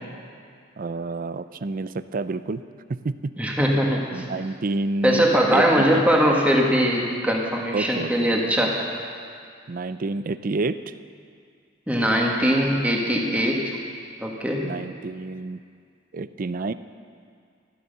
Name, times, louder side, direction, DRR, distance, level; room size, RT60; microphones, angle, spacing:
voice 1, 0.8-2.6 3.0-3.3 4.1-5.3 5.5-6.0 7.7-8.3 9.7-10.9 14.6-15.6 16.1-16.7, right 3 dB, 45° right, 13 dB, 0.4 m, -29 dB
voice 2, 3.4-4.2 5.0-8.8 11.9-13.8 14.2-14.7, equal, 5° right, -1 dB, 1.8 m, -21 dB
14.5 x 12.5 x 6.8 m, 2.2 s
head